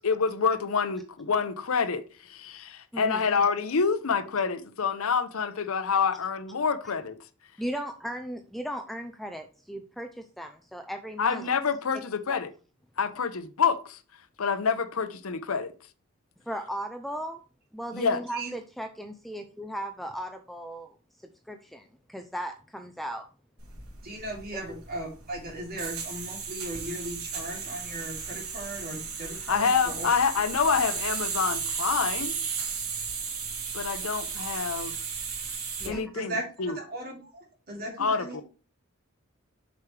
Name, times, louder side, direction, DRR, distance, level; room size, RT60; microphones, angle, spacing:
voice 1, 0.0-7.1 11.2-12.5 13.0-14.0 14.4-15.7 17.9-18.2 29.5-32.3 33.7-35.0 35.9-36.3 36.6-36.7 38.0-38.4, left 5 dB, 75° left, 0.7 m, -27 dB
voice 2, 7.6-11.5 12.3-12.4 16.5-17.4 17.7-20.9 21.5-23.3 35.8-36.0, right 1 dB, ahead, 0.5 m, -37 dB
sound 1, 23.6-35.9, right 6 dB, 85° right, 2.8 m, -34 dB
voice 3, 24.0-30.1 35.8-38.4, right 1 dB, 45° right, 2.8 m, -37 dB
7.1 x 6.0 x 3.3 m
head